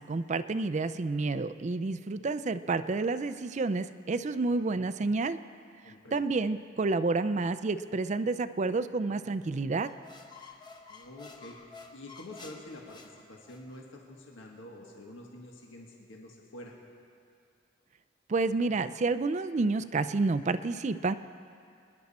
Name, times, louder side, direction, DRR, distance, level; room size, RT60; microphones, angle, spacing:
voice 1, 0.0-5.4 6.1-9.9 18.3-21.1, right 3 dB, 35° right, 12 dB, 0.4 m, -29 dB
voice 2, 5.8-6.3 10.9-11.6 11.9-16.7, left 1 dB, 85° left, 0 dB, 1.7 m, -47 dB
sound 1, 9.7-13.8, left 4 dB, 25° left, 0.9 m, -51 dB
25.5 x 10.5 x 4.3 m, 2.4 s
head